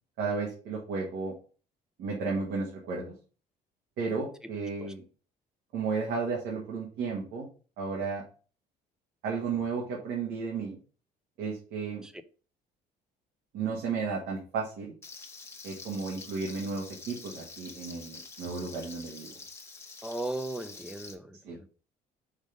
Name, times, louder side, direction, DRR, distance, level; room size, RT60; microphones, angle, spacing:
voice 1, 0.2-1.3 2.0-3.1 4.0-5.0 5.7-7.5 7.8-8.2 9.2-10.8 11.4-12.0 13.5-14.9 15.6-19.3 21.4-21.6, right 4 dB, 80° right, 1.6 m, -33 dB
Frying (food), 15.0-21.1, left 4 dB, 15° left, 1.0 m, -47 dB
voice 2, 20.0-21.7, right 2 dB, 5° right, 0.6 m, -37 dB
5.2 x 3.7 x 5.1 m
cardioid pair, 110°, 17 cm